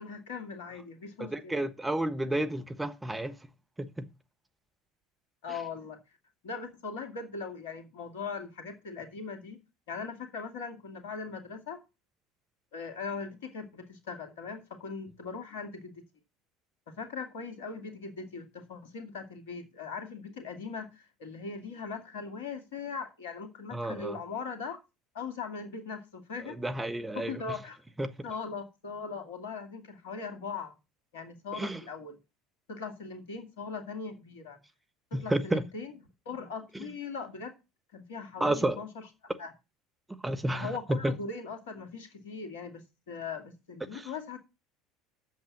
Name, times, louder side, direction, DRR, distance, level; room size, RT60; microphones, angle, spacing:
voice 1, 0.0-1.6 5.4-6.0 6.4-9.6 9.9-11.8 12.7-16.0 16.9-24.8 25.1-26.6 27.2-27.8 28.2-30.7 31.1-32.2 32.7-34.6 35.1-35.9 36.3-37.5 37.9-38.9 39.4-39.5 40.5-44.4, left 5 dB, 70° left, 2.2 m, -40 dB
voice 2, 1.2-3.4 3.8-4.1 23.7-24.2 26.5-27.3 28.0-28.1 31.6-31.8 35.1-35.6 38.4-38.8 40.2-41.1 43.9-44.0, right 1 dB, 10° right, 1.1 m, -31 dB
7.8 x 7.3 x 7.2 m
figure-of-eight pair, 70°, 0 cm